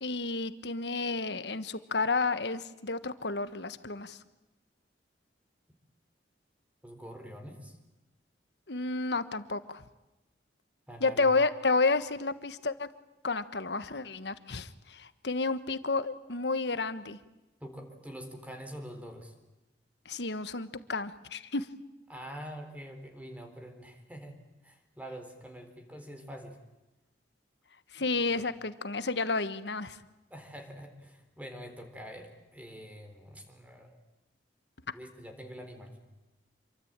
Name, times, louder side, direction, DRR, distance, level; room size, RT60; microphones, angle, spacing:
voice 1, 0.0-4.2 8.7-9.8 11.0-12.9 13.2-17.2 20.0-21.7 27.9-30.0, left 3 dB, 70° left, 12 dB, 1.4 m, -31 dB
voice 2, 6.8-7.8 10.9-11.3 17.6-19.3 22.1-24.4 24.6-26.6 28.0-28.1 28.4-28.5 30.3-34.0 34.9-36.0, equal, 10° right, 5 dB, 4.0 m, -45 dB
27.5 x 24.0 x 8.9 m, 1.0 s
head